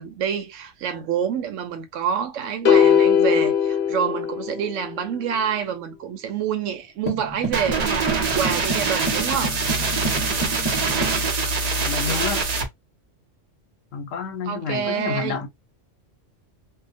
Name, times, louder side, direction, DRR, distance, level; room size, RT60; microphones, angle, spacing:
voice 1, 0.0-9.5 14.5-15.4, right 8 dB, 80° right, 1.0 m, -27 dB
sound 1, 2.7-5.0, left 8 dB, 60° left, 0.7 m, -19 dB
sound 2, 7.1-11.2, right 2 dB, 10° right, 1.2 m, -30 dB
sound 3, 7.5-12.7, right 4 dB, 55° right, 0.4 m, -24 dB
voice 2, 11.8-12.5 13.9-15.5, left 6 dB, 85° left, 1.1 m, -29 dB
2.7 x 2.1 x 2.6 m
omnidirectional pair, 1.3 m